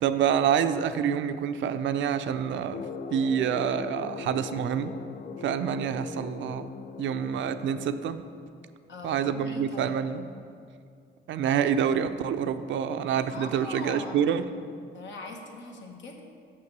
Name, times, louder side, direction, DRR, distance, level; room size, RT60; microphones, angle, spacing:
voice 1, 0.0-2.8 3.1-4.9 5.4-6.7 7.0-8.2 9.0-10.3 11.3-14.4, right 8 dB, 70° right, 10 dB, 0.5 m, -27 dB
sound 1, 2.7-8.5, left 5 dB, 45° left, 0.4 m, -40 dB
voice 2, 8.9-9.9 13.3-14.4 14.9-16.2, left 3 dB, 70° left, 1 dB, 1.4 m, -41 dB
6.8 x 5.8 x 6.7 m, 2.3 s
cardioid pair, 90°, 20 cm